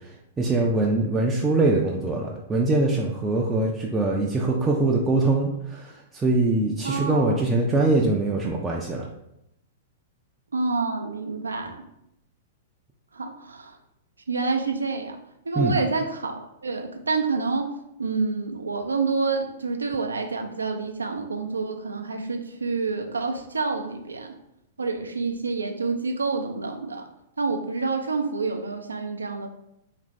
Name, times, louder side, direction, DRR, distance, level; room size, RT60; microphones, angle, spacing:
voice 1, 0.4-9.1 15.6-15.8, right 2 dB, 15° right, -2 dB, 0.4 m, -23 dB
voice 2, 6.8-7.4 10.5-11.8 13.1-13.8 14.3-15.2 15.5-17.7 18.0-24.3 24.8-27.0 27.4-29.5, right 4 dB, 80° right, 5 dB, 0.4 m, -28 dB
3.2 x 2.5 x 3.0 m, 0.83 s
figure-of-eight pair, 105°, 0 cm